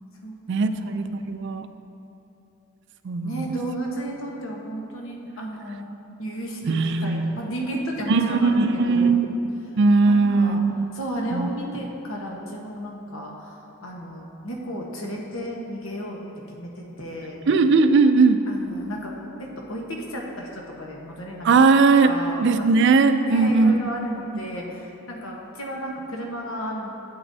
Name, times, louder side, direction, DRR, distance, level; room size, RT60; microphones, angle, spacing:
voice 1, 0.5-1.7 3.0-3.5 6.7-7.4 8.1-9.5 9.8-10.7 11.3-11.5 17.5-18.4 21.4-22.1 22.4-23.8, right 4 dB, 55° right, 9 dB, 0.4 m, -19 dB
voice 2, 3.2-5.9 6.2-8.6 8.9-9.1 10.1-10.6 10.9-16.2 16.5-17.4 18.5-19.1 19.6-21.5 22.1-22.7 23.2-26.9, right 1 dB, 65° left, -1 dB, 1.1 m, -33 dB
11.5 x 8.9 x 2.7 m, 2.8 s
head